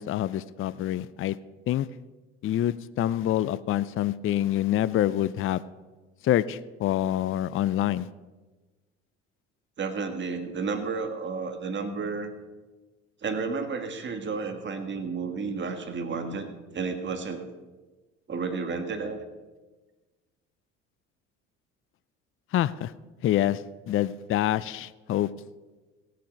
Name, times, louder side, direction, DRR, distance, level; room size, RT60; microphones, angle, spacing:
voice 1, 0.0-1.4 1.7-1.9 2.4-5.6 6.2-8.1 22.5-22.9 23.2-25.3, left 12 dB, 40° left, 17 dB, 0.5 m, -26 dB
voice 2, 9.8-12.3 13.2-16.5 16.7-17.4 18.3-19.2, right 4 dB, 30° right, 7 dB, 1.6 m, -31 dB
17.0 x 7.6 x 5.2 m, 1.2 s
hypercardioid pair, 70°, 35 cm